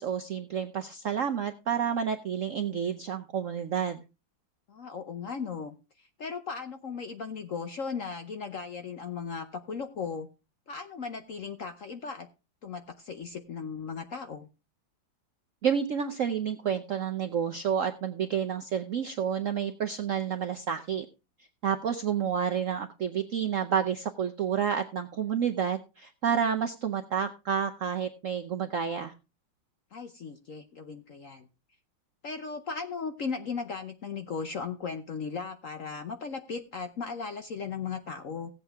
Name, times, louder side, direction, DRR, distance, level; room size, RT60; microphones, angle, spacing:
voice 1, 0.0-4.0 15.6-21.1 21.6-29.1, right 8 dB, 65° right, 7 dB, 0.7 m, -30 dB
voice 2, 4.7-10.3 10.7-12.3 12.6-14.5 29.9-31.5 32.2-38.5, left 5 dB, 60° left, 8 dB, 0.8 m, -37 dB
16.5 x 8.0 x 3.4 m, 0.29 s
omnidirectional pair, 2.2 m